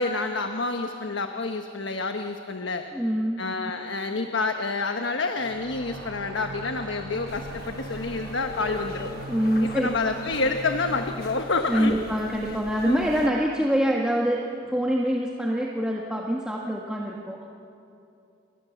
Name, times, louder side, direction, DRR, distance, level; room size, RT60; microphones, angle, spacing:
voice 1, 0.0-2.8 3.4-9.1 9.6-12.0 12.8-13.1, left 3 dB, 75° left, 5 dB, 1.2 m, -28 dB
voice 2, 2.9-3.5 9.3-9.9 11.7-17.4, equal, 5° right, -2 dB, 1.6 m, -25 dB
sound 1, 5.4-12.8, equal, 85° right, 4.1 m, -39 dB
sound 2, 7.3-13.3, left 2 dB, 50° left, 1.3 m, -44 dB
28.5 x 24.0 x 7.3 m, 2.7 s
head